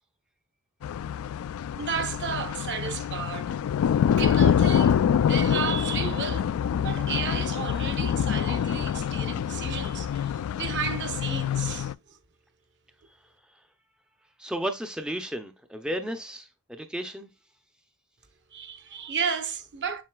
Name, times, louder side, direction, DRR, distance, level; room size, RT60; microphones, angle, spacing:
sound 1, 0.8-11.9, left 8 dB, 70° left, 0.3 m, -26 dB
voice 1, 1.8-3.5 4.2-6.5 6.8-11.9 18.5-20.0, right 6 dB, 55° right, 1.1 m, -33 dB
Percussion, 4.2-9.0, right 2 dB, 90° right, 0.8 m, -48 dB
voice 2, 14.4-17.3, equal, 5° right, 0.5 m, -33 dB
7.5 x 6.5 x 2.3 m
head